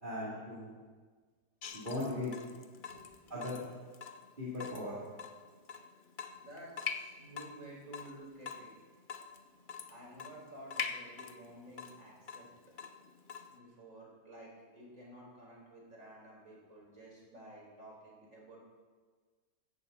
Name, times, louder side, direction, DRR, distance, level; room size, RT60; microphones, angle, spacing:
voice 1, 0.0-0.7 1.7-2.3 3.3-3.6 4.4-5.0, left 2 dB, 30° right, -9 dB, 3.3 m, -38 dB
Water tap faucet / Drip, 1.6-13.6, left 6 dB, 55° left, 0.5 m, -45 dB
voice 2, 2.8-3.2 6.4-8.7 9.9-12.5 13.5-18.6, right 1 dB, 45° right, -3 dB, 4.9 m, -52 dB
16.0 x 14.0 x 4.2 m, 1.5 s
omnidirectional pair, 1.8 m